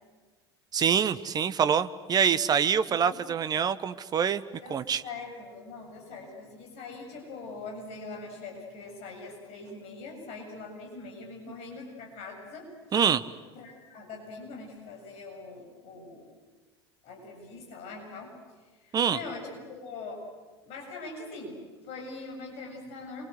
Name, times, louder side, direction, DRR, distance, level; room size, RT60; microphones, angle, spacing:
voice 1, 0.7-4.4 4.7-5.0 12.9-13.2 18.9-19.2, right 7 dB, 25° right, 13 dB, 1.1 m, -25 dB
voice 2, 2.9-3.2 4.6-12.7 13.5-16.3 17.0-18.3 18.8-20.2 20.6-23.3, left 3 dB, 45° left, 1 dB, 7.4 m, -42 dB
28.5 x 24.0 x 7.9 m, 1.4 s
figure-of-eight pair, 75°, 14 cm